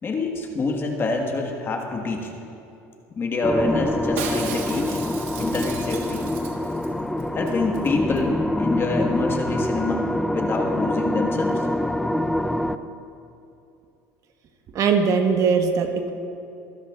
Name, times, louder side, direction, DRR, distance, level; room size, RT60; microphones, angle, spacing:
voice 1, 0.0-2.3 3.1-5.0 5.3-6.3 7.3-11.7, left 3 dB, 35° left, 2 dB, 1.5 m, -26 dB
sound 1, 3.4-12.8, left 1 dB, 5° left, 0.4 m, -25 dB
Shatter, 4.2-6.9 7.2-7.3 7.5-7.9 8.2-8.3, right 6 dB, 85° right, 1.3 m, -35 dB
voice 2, 14.7-16.1, right 5 dB, 55° right, 5 dB, 1.2 m, -20 dB
24.0 x 11.5 x 2.4 m, 2.6 s
supercardioid pair, 95°, 7 cm